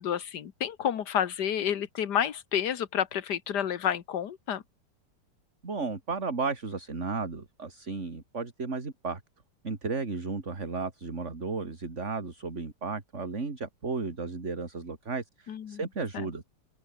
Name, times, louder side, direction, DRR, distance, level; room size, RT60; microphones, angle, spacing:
voice 1, 0.0-4.6 15.5-15.8, left 9 dB, 60° left, 1.8 m, -30 dB
voice 2, 5.6-9.2 9.6-16.4, right 4 dB, 40° right, 3.0 m, -34 dB
open air
omnidirectional pair, 2.0 m